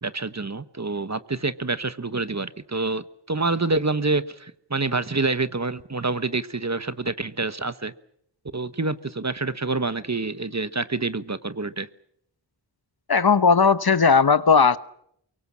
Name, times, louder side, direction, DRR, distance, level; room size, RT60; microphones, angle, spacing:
voice 1, 0.0-7.9 8.5-11.9, right 3 dB, 40° right, 13 dB, 1.2 m, -27 dB
voice 2, 13.1-14.8, left 5 dB, 55° left, 14 dB, 1.0 m, -17 dB
24.0 x 23.0 x 7.3 m, 0.71 s
wide cardioid pair, 60°, 43 cm